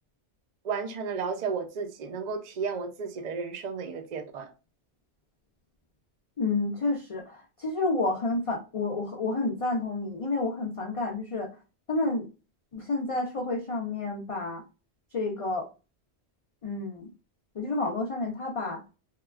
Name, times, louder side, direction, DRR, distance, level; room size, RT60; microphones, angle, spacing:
voice 1, 0.6-4.5, right 5 dB, 50° right, 0.5 m, -33 dB
voice 2, 6.4-11.5 11.9-12.3 12.7-14.6 15.1-15.7 16.6-17.1 17.6-18.8, left 3 dB, 45° left, 0.5 m, -30 dB
2.9 x 2.3 x 2.3 m
omnidirectional pair, 1.1 m